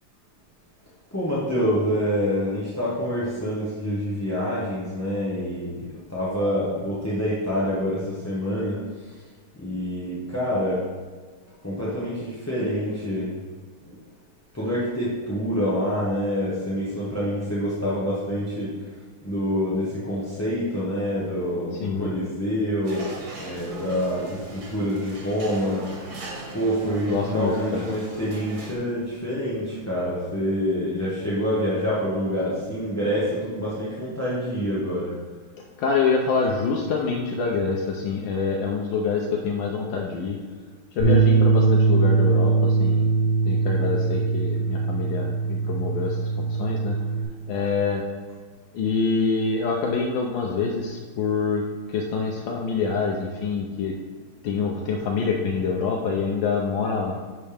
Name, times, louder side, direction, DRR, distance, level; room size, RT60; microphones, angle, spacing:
voice 1, 1.1-9.2 9.5-10.8 11.6-13.4 14.5-18.9 19.2-25.9 26.5-35.2, equal, 10° left, -8 dB, 0.8 m, -26 dB
sound 1, 22.8-28.7, right 2 dB, 65° right, 1.9 m, -40 dB
voice 2, 27.1-27.8 35.8-40.4 40.9-43.2 43.4-47.0 47.5-48.0 48.7-51.6 51.9-53.9 54.4-57.1, left 5 dB, 70° left, -1 dB, 1.3 m, -26 dB
Bass guitar, 41.0-47.2, right 4 dB, 45° left, 2.3 m, -21 dB
10.5 x 4.3 x 3.4 m, 1.5 s
omnidirectional pair, 2.3 m